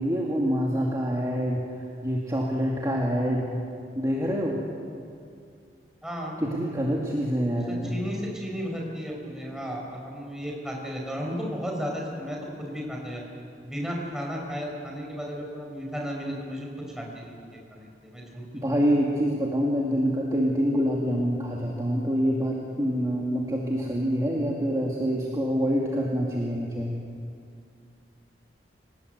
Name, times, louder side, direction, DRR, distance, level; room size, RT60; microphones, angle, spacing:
voice 1, 0.0-1.6 2.0-3.5 3.9-4.6 6.4-7.9 18.6-26.9, equal, 20° right, -3 dB, 2.3 m, -26 dB
voice 2, 6.0-6.4 7.7-13.2 13.6-16.7 17.0-18.7, equal, 5° right, -1 dB, 5.4 m, -34 dB
28.5 x 19.0 x 8.0 m, 2.3 s
head